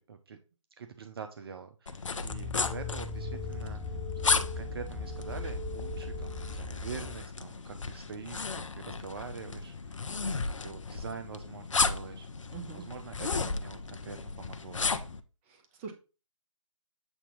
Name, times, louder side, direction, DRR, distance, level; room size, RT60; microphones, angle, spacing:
voice 1, 0.1-0.4 0.8-4.0 4.2-15.2, right 6 dB, 45° right, 7 dB, 0.9 m, -45 dB
sound 1, 1.9-15.2, left 4 dB, 65° left, 0.8 m, -34 dB
sound 2, 2.3-7.3, left 3 dB, ahead, 0.4 m, -38 dB
voice 2, 12.5-12.8 15.5-15.9, right 6 dB, 20° right, 5 dB, 1.3 m, -43 dB
8.3 x 2.9 x 5.2 m, 0.33 s
figure-of-eight pair, 140°, 17 cm